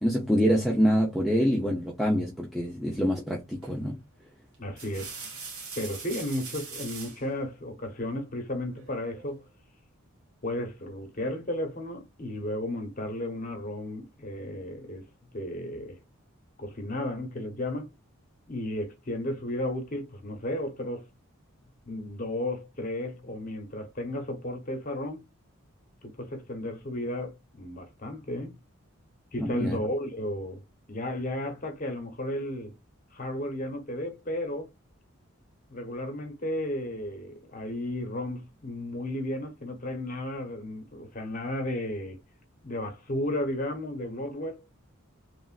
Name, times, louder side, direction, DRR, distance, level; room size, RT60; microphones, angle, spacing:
voice 1, 0.0-4.0 29.4-29.8, equal, ahead, 0.5 m, -25 dB
sound 1, 3.6-3.9 4.5-7.2 8.7-9.4, right 4 dB, 85° right, 1.2 m, -42 dB
voice 2, 4.6-5.2 5.8-9.4 10.4-15.1 15.3-16.0 16.6-17.9 18.5-21.1 21.9-25.2 26.0-28.6 29.3-30.6 30.9-32.7 33.1-34.7 35.7-42.2 42.6-44.6, left 1 dB, 40° left, 0.9 m, -34 dB
3.1 x 2.4 x 2.4 m
head